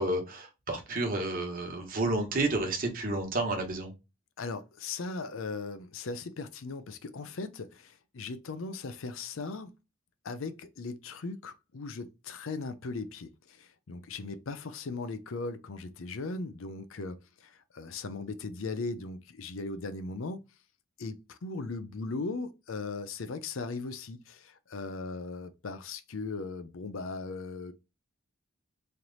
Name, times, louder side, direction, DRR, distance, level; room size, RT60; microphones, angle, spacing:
voice 1, 0.0-3.9, right 2 dB, 40° right, 1.1 m, -30 dB
voice 2, 4.4-9.7 10.2-20.4 21.0-27.7, left 3 dB, 65° left, 0.5 m, -38 dB
3.2 x 3.0 x 3.9 m
head